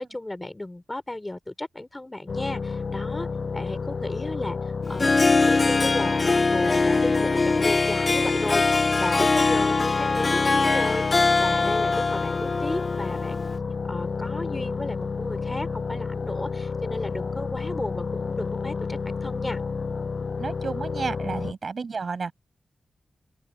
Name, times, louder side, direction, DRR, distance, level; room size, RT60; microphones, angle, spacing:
voice 1, 0.0-3.3 3.5-13.5 13.9-19.6 21.5-21.6, left 1 dB, 15° left, 3.5 m, -34 dB
sound 1, 2.3-21.5, left 5 dB, 45° left, 7.7 m, -31 dB
Harp, 4.8-13.6, left 3 dB, 30° left, 0.3 m, -22 dB
voice 2, 20.4-22.3, right 5 dB, 50° right, 7.6 m, -31 dB
open air
wide cardioid pair, 135°, 0 cm